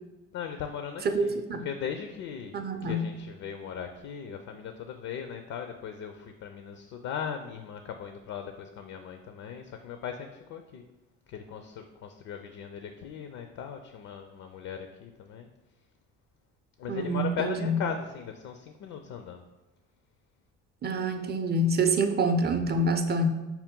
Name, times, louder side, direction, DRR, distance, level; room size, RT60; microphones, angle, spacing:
voice 1, 0.3-2.5 2.8-10.8 11.3-15.5 16.8-19.4, left 7 dB, 55° left, 6 dB, 0.5 m, -38 dB
voice 2, 1.1-1.6 2.5-3.1 16.9-17.8 20.8-23.3, right 1 dB, 30° right, 7 dB, 0.5 m, -26 dB
5.7 x 2.2 x 3.7 m, 1.1 s
supercardioid pair, 70°, 33 cm